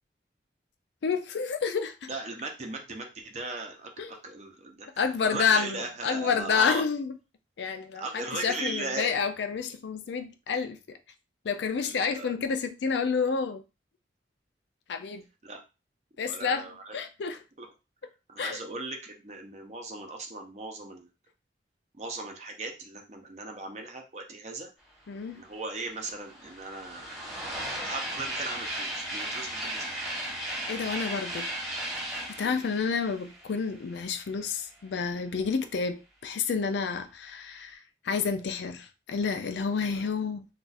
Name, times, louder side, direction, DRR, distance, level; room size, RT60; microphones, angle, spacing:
voice 1, 1.0-2.1 4.0-4.2 5.0-7.1 7.6-11.0 11.4-13.6 14.9-15.2 16.2-17.4 18.4-18.6 25.1-25.4 30.7-31.5 32.1-40.5, left 5 dB, 70° left, 0.4 m, -29 dB
voice 2, 2.1-6.8 7.9-9.2 11.9-12.3 15.4-15.6 16.2-17.0 17.6-17.7 18.3-21.1 22.0-24.7 25.3-27.2 27.8-30.1 32.4-32.6, right 2 dB, 35° right, 0.6 m, -38 dB
sound 1, 25.3-25.4 25.7-34.3, right 1 dB, ahead, 0.9 m, -36 dB
2.4 x 2.4 x 4.0 m
head